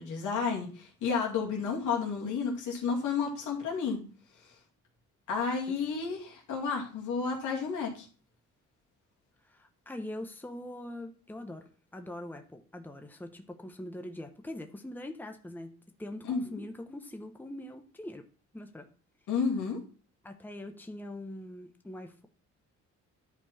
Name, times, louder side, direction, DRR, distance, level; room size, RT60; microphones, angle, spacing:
voice 1, 0.0-4.0 5.3-8.1 16.2-16.4 19.3-19.8, left 5 dB, 80° left, 0 dB, 2.4 m, -31 dB
voice 2, 9.4-18.2 18.5-18.9 20.2-22.3, left 1 dB, 5° left, 5 dB, 1.0 m, -43 dB
10.5 x 4.6 x 4.2 m, 0.39 s
cardioid pair, 90°, 30 cm